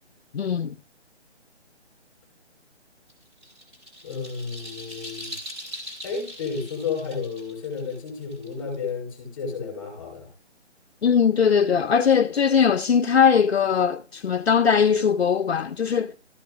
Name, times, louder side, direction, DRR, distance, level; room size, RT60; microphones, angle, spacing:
voice 1, 0.3-0.7 11.0-16.1, left 7 dB, 60° left, 0.6 m, -20 dB
sound 1, 3.1-8.9, equal, 25° right, 2.9 m, -41 dB
voice 2, 4.0-5.4 6.0-10.3, left 5 dB, 20° left, 4.5 m, -32 dB
13.5 x 8.7 x 2.4 m
hypercardioid pair, 175°, 35 cm